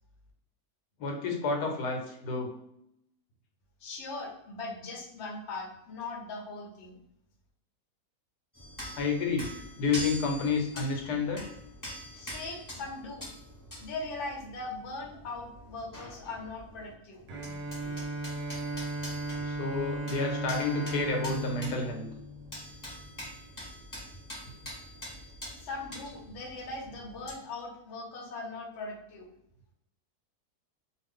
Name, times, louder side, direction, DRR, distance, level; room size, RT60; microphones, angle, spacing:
voice 1, 1.0-2.5 9.0-9.5 9.8-11.4 19.4-22.1, left 4 dB, 80° left, 2 dB, 1.2 m, -30 dB
voice 2, 3.8-7.0 12.1-13.2 13.8-17.2 25.6-29.3, left 3 dB, 55° left, 0 dB, 0.9 m, -40 dB
sound 1, 8.5-16.9 17.2-27.4, equal, 15° left, 0.8 m, -45 dB
Bowed string instrument, 17.3-23.2, right 2 dB, 90° right, 1.2 m, -36 dB
2.6 x 2.4 x 3.5 m, 0.78 s
omnidirectional pair, 1.7 m